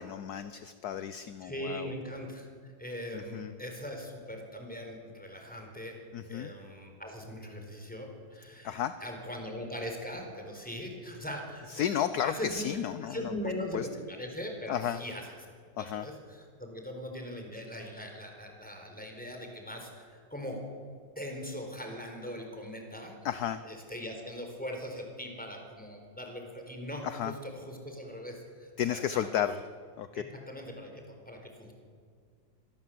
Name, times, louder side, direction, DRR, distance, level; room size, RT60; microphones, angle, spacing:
voice 1, 0.0-1.9 3.1-3.5 6.1-6.5 8.6-8.9 11.7-13.3 13.7-13.9 14.7-15.0 15.8-16.1 23.2-23.6 27.0-27.3 28.8-29.6 30.0-30.2, left 10 dB, 65° left, 12 dB, 1.2 m, -33 dB
voice 2, 1.4-6.0 6.3-12.6 13.0-15.3 15.8-20.6 21.2-23.2 23.6-29.3 30.1-31.7, equal, 5° left, 3 dB, 4.4 m, -41 dB
25.0 x 19.5 x 7.8 m, 2.2 s
omnidirectional pair, 2.0 m